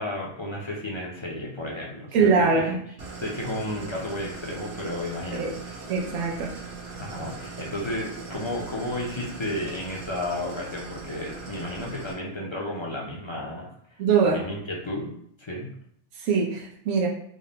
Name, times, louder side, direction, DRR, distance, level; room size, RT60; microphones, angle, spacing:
voice 1, 0.0-2.7 3.2-5.8 7.0-15.1 15.4-15.7, left 1 dB, 35° left, -3 dB, 0.4 m, -33 dB
voice 2, 2.1-2.8 5.3-5.5 5.9-6.5 14.0-14.4 16.2-17.1, right 5 dB, 90° right, -1 dB, 1.1 m, -22 dB
Idling, 3.0-12.1, right 4 dB, 65° right, 1.1 m, -40 dB
3.7 x 2.1 x 3.9 m, 0.68 s
omnidirectional pair, 1.3 m